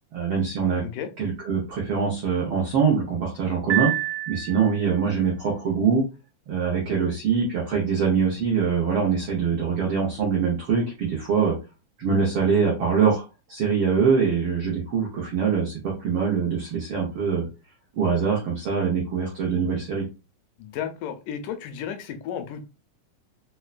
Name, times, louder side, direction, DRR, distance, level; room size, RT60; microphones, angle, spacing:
voice 1, 0.1-0.8 1.2-3.9 4.3-6.0 6.5-11.6 12.0-13.2 13.5-17.5 18.0-20.0, right 6 dB, 90° right, -2 dB, 1.1 m, -23 dB
Piano, 3.7-5.0, right 14 dB, 70° right, 1.9 m, -28 dB
voice 2, 20.6-22.6, left 8 dB, 85° left, 7 dB, 2.2 m, -33 dB
5.3 x 2.2 x 2.4 m, 0.30 s
omnidirectional pair, 3.6 m